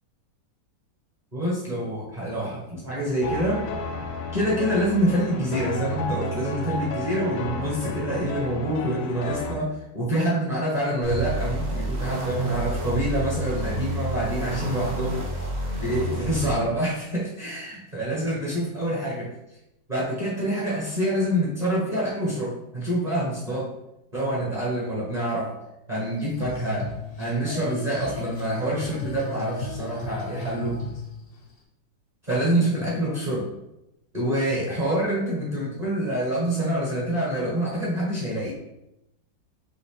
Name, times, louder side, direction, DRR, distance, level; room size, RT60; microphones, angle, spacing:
voice 1, 1.3-3.6 4.3-15.2 15.8-19.3 19.9-23.7 24.1-25.5 25.9-26.9 27.2-30.8 32.3-33.5 34.1-38.5, right 1 dB, 30° right, -6 dB, 0.9 m, -26 dB
sound 1, 3.2-9.5, left 1 dB, 90° left, 1.3 m, -32 dB
sound 2, 11.0-16.5, right 1 dB, 75° right, 0.4 m, -29 dB
Female singing, 26.1-31.6, left 3 dB, 60° left, 0.6 m, -35 dB
5.6 x 2.8 x 3.2 m, 0.87 s
omnidirectional pair, 2.0 m